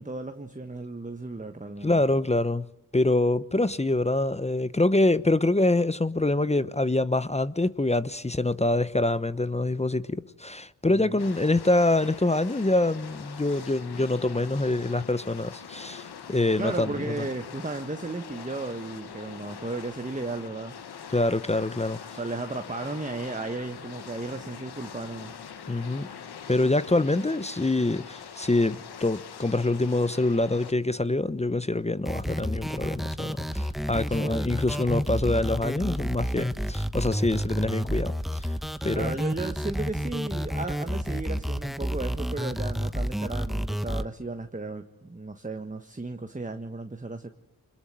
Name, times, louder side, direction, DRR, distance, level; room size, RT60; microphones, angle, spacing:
voice 1, 0.0-2.0 10.9-11.2 16.5-20.8 22.1-25.3 34.1-34.6 38.9-47.3, right 2 dB, 20° right, 1.5 m, -35 dB
voice 2, 1.8-2.7 2.9-17.1 21.1-22.0 25.7-26.1 26.5-38.5 38.8-39.1, left 2 dB, 15° left, 0.9 m, -25 dB
sound 1, 11.2-30.7, left 7 dB, 85° left, 1.5 m, -43 dB
sound 2, 32.0-44.0, equal, ahead, 1.2 m, -30 dB
24.5 x 21.5 x 9.4 m
cardioid pair, 40°, 38 cm